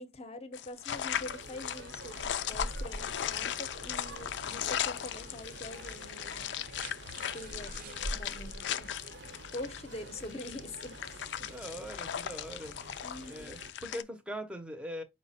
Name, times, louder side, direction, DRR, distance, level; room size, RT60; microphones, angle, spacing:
voice 1, 0.0-6.5 7.2-8.9 9.5-11.4 13.0-13.6, left 1 dB, 35° left, 0.6 m, -44 dB
sound 1, 0.5-14.0, left 10 dB, 75° left, 0.3 m, -38 dB
sound 2, 0.9-13.7, right 1 dB, 80° right, 0.9 m, -45 dB
sound 3, 5.7-8.1 9.6-9.7, right 6 dB, 50° right, 0.6 m, -52 dB
voice 2, 11.4-12.8 13.3-15.0, equal, 5° right, 0.6 m, -41 dB
4.8 x 2.1 x 4.1 m
head